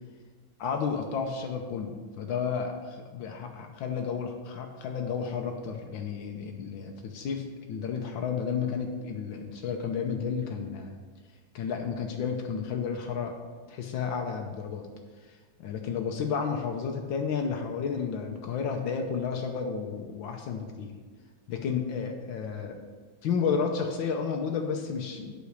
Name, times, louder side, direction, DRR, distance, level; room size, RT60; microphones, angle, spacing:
voice 1, 0.6-10.9 11.5-13.4 13.7-14.9 15.2-21.0 21.5-22.8 23.2-25.3, left 6 dB, 80° left, 3 dB, 1.6 m, -32 dB
8.5 x 6.3 x 6.4 m, 1.5 s
omnidirectional pair, 2.1 m